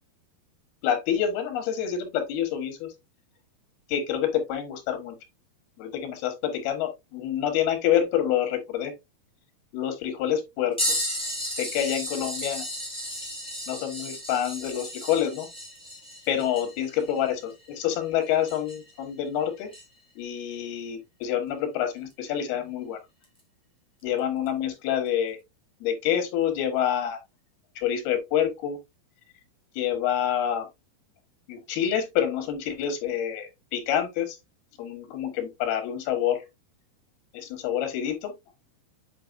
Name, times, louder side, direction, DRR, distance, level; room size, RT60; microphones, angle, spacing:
voice 1, 0.8-2.9 3.9-5.2 5.8-8.9 9.7-11.2 11.5-12.7 13.7-15.5 16.3-19.7 20.2-23.0 24.0-25.4 25.8-27.2 27.8-28.8 29.8-30.7 31.5-34.4 34.8-36.4 37.3-38.3, left 9 dB, 85° left, 3.4 m, -27 dB
sound 1, 10.8-19.0 19.7-19.8 22.1-22.2 23.2-23.4 24.5-24.6, equal, ahead, 2.3 m, -34 dB
8.6 x 5.2 x 2.5 m
omnidirectional pair, 4.4 m